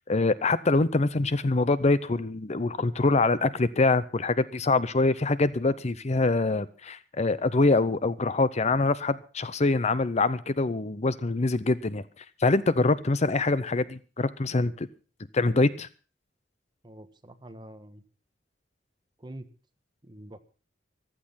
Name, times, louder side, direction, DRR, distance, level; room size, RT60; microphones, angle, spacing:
voice 1, 0.1-14.9 15.3-15.9, left 3 dB, 35° left, 16 dB, 0.7 m, -24 dB
voice 2, 16.8-18.0 19.2-19.5 20.0-20.4, right 1 dB, 25° right, 8 dB, 1.4 m, -45 dB
15.0 x 12.5 x 5.7 m, 0.38 s
head